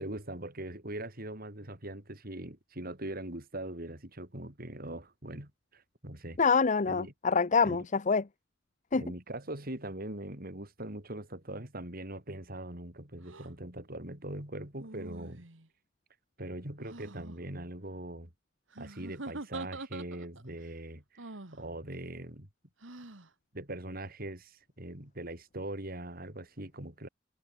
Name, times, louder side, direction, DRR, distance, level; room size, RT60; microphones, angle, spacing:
voice 1, 0.0-6.4 6.9-7.1 7.6-7.8 8.9-15.5 16.4-18.3 18.8-22.5 23.5-27.1, right 1 dB, 50° right, 4.9 m, -41 dB
voice 2, 6.4-8.3 8.9-9.0, left 5 dB, 40° left, 0.7 m, -26 dB
sound 1, 13.2-13.5 14.8-15.7 16.8-17.4 18.7-20.5 21.2-21.6 22.8-23.3, right 2 dB, 90° right, 2.5 m, -44 dB
head